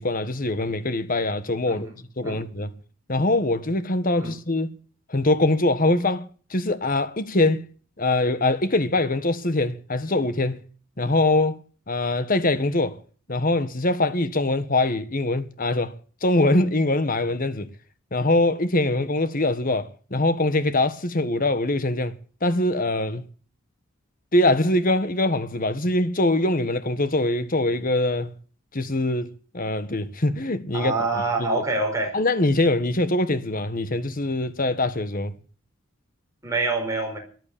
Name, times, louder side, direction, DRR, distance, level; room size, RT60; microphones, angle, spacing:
voice 1, 0.0-1.9 2.2-2.8 3.1-4.8 5.1-7.6 8.0-10.6 11.0-11.6 11.9-13.0 13.3-15.9 16.2-17.7 18.1-22.2 22.4-23.2 24.3-28.3 28.7-31.6 32.1-35.4, left 2 dB, 40° left, 1.5 m, -23 dB
voice 2, 30.7-32.2 36.4-37.2, right 3 dB, 15° right, 4.9 m, -25 dB
14.0 x 11.0 x 8.8 m
head